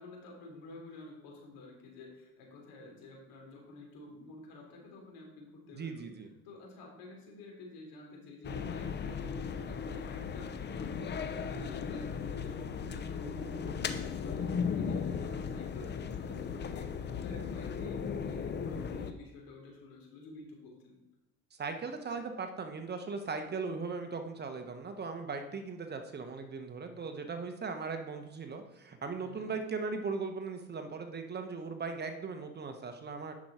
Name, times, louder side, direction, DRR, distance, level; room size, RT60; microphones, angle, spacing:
voice 1, 0.0-6.1 6.4-21.0 29.2-29.5, left 2 dB, 70° left, 0 dB, 3.5 m, -50 dB
voice 2, 5.7-6.3 21.5-33.3, right 4 dB, 30° right, 6 dB, 1.1 m, -38 dB
sound 1, 8.4-19.1, left 6 dB, 30° left, 0.7 m, -36 dB
10.0 x 6.2 x 4.4 m, 1.0 s
supercardioid pair, 100°, 35 cm